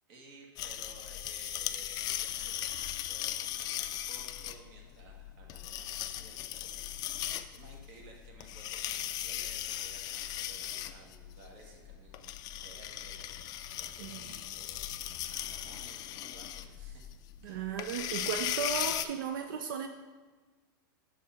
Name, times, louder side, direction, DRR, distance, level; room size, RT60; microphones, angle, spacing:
voice 1, 0.1-13.3 13.7-15.0 15.3-17.1 17.4-17.7, right 3 dB, 55° right, 0 dB, 1.6 m, -56 dB
sound 1, 0.6-19.1, left 12 dB, 35° left, 0.3 m, -38 dB
voice 2, 17.4-19.9, right 7 dB, 70° right, 7 dB, 0.4 m, -35 dB
6.3 x 4.2 x 4.9 m, 1.4 s
hypercardioid pair, 115°, 11 cm